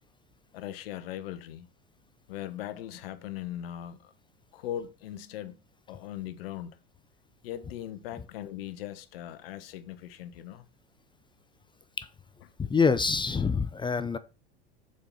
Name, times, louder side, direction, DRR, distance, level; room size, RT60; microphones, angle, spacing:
voice 1, 0.5-1.7 2.3-4.1 4.5-5.6 5.9-6.7 7.4-10.7, left 11 dB, 70° left, 1.2 m, -39 dB
voice 2, 12.6-14.2, left 5 dB, 15° left, 0.6 m, -26 dB
6.8 x 4.9 x 5.7 m
hypercardioid pair, 90°, 30 cm